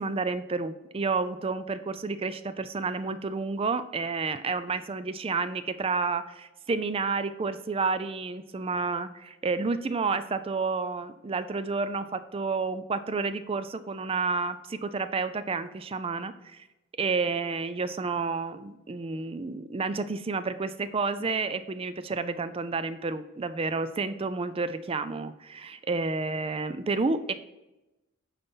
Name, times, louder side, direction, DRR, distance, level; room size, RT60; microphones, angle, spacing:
voice 1, 0.0-16.6 17.0-27.3, right 4 dB, 25° right, 12 dB, 0.4 m, -30 dB
9.1 x 4.1 x 5.4 m, 1.0 s
head